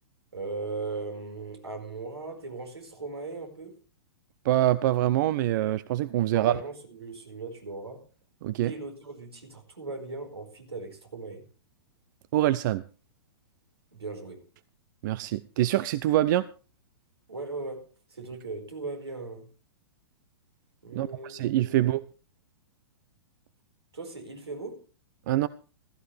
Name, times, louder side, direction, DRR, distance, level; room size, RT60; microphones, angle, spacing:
voice 1, 0.3-3.8 6.2-8.0 8.6-11.5 13.9-14.4 17.3-19.5 20.8-21.3 21.6-21.8 23.9-24.9, right 3 dB, 85° right, 4.8 m, -38 dB
voice 2, 4.4-6.6 8.4-8.7 12.3-12.8 15.0-16.5 20.9-22.0 25.3-25.5, right 14 dB, 50° right, 0.6 m, -25 dB
16.0 x 14.5 x 3.3 m
figure-of-eight pair, 110°, 13 cm